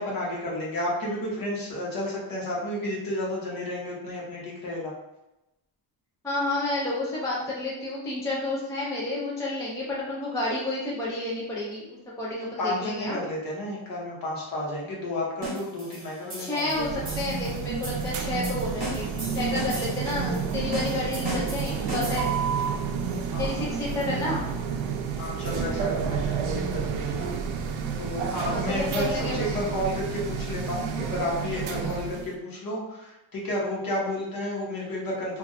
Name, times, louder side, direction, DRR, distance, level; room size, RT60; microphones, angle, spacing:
voice 1, 0.0-4.9 12.6-16.9 23.3-23.6 25.2-27.3 28.0-35.4, left 1 dB, 45° left, -4 dB, 0.9 m, -31 dB
voice 2, 6.2-13.2 16.4-19.1 19.3-22.3 23.4-24.5 28.4-29.5 31.8-32.0, left 2 dB, 10° left, -5 dB, 0.3 m, -30 dB
sound 1, 15.4-22.5, right 1 dB, 20° right, 0.9 m, -37 dB
sound 2, 16.7-32.3, right 6 dB, 80° right, 0.5 m, -30 dB
2.5 x 2.2 x 3.9 m, 0.94 s
cardioid pair, 175°, 46 cm